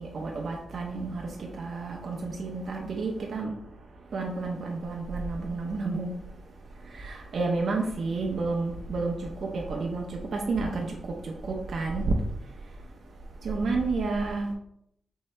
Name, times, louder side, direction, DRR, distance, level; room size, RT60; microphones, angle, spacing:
voice 1, 0.0-6.3 6.7-13.0 13.4-14.5, right 3 dB, 60° right, -1 dB, 0.6 m, -31 dB
4.5 x 2.8 x 3.2 m, 0.71 s
cardioid pair, 100°, 0 cm